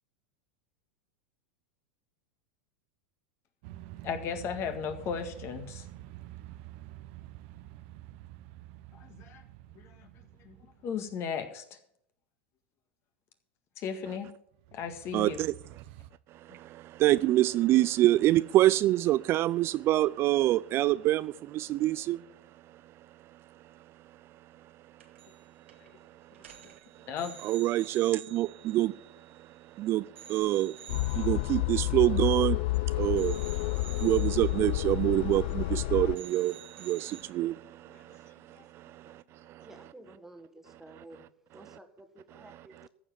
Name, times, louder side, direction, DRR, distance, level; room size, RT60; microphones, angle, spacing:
sound 1, 3.6-11.1 14.5-16.1, right 15 dB, 60° right, 0.8 m, -48 dB
voice 1, 4.0-5.9 8.9-9.4 9.8-10.1 10.4-10.6 10.8-11.8 13.8-14.3 14.7-15.5 16.5-16.6 25.8-25.9 26.6-26.7 27.1-27.3 37.9-38.0 38.6-38.7 39.7-40.1, left 7 dB, 40° left, 1.8 m, -36 dB
voice 2, 15.1-15.5 16.5-22.2 27.4-29.0 29.8-30.8 31.1-39.9 41.0-41.1 41.6-41.8 42.3-42.9, right 15 dB, 40° right, 0.4 m, -27 dB
sound 2, 25.0-25.4 25.7-25.9 26.3-29.7 30.2-32.8 33.2-35.8 36.1-37.2, right 9 dB, 85° right, 2.1 m, -50 dB
sound 3, 30.9-36.2, left 21 dB, 60° left, 0.3 m, -30 dB
voice 3, 39.6-41.2 41.5-42.9, right 2 dB, 5° right, 1.6 m, -52 dB
14.5 x 5.0 x 9.1 m
hypercardioid pair, 100°, 6 cm